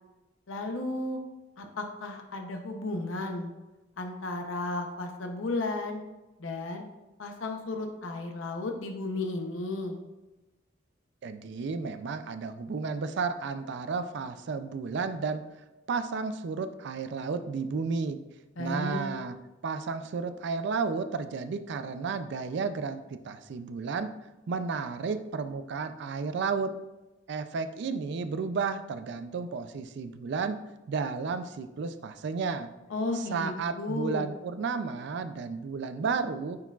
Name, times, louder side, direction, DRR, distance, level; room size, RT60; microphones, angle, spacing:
voice 1, 0.5-1.2 1.6-3.5 4.0-6.0 6.4-6.9 7.2-10.0 18.6-19.1 32.9-34.3, left 2 dB, 85° left, 4 dB, 0.7 m, -33 dB
voice 2, 11.2-15.4 15.9-18.2 18.6-19.4 19.6-24.1 24.5-26.7 27.3-30.6 30.9-32.7 33.1-36.6, right 5 dB, 60° right, 10 dB, 0.4 m, -32 dB
9.4 x 4.6 x 2.4 m, 1.1 s
head